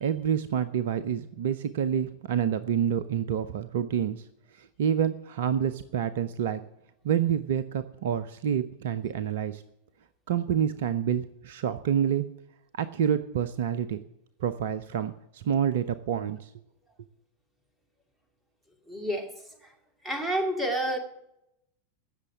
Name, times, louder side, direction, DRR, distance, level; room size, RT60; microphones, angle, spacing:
voice 1, 0.0-4.2 4.6-6.6 7.0-9.6 10.3-12.2 12.7-14.0 14.4-16.5, right 9 dB, 55° right, 14 dB, 0.6 m, -28 dB
voice 2, 18.9-19.3 20.0-21.0, right 1 dB, 10° right, 5 dB, 2.5 m, -28 dB
16.5 x 6.6 x 8.0 m, 0.82 s
figure-of-eight pair, 90°, 0 cm